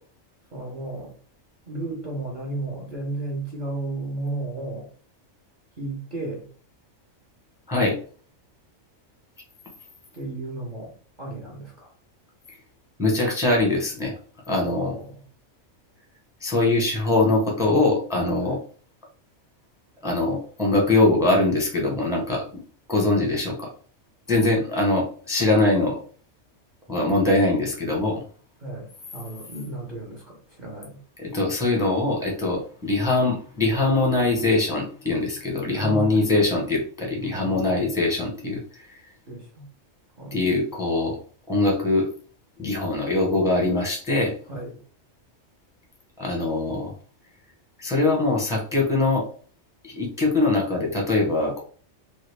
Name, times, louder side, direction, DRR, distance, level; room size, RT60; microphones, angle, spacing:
voice 1, 0.5-1.1 1.7-4.9 5.8-6.5 10.1-10.9 11.2-11.9 14.6-15.1 28.6-28.9 29.1-31.0 35.6-36.3 37.2-37.8 39.3-39.7 40.2-40.4 44.5-44.7, right 2 dB, 40° right, -4 dB, 1.0 m, -33 dB
voice 2, 13.0-14.1 14.5-14.9 16.4-18.6 20.0-22.6 22.9-23.7 24.3-26.0 26.9-28.2 31.2-38.6 40.3-41.2 41.5-42.1 42.6-44.3 46.2-46.9 47.8-49.3 49.8-51.6, left 2 dB, 5° right, 0 dB, 0.7 m, -22 dB
3.0 x 2.3 x 3.3 m, 0.43 s
omnidirectional pair, 1.4 m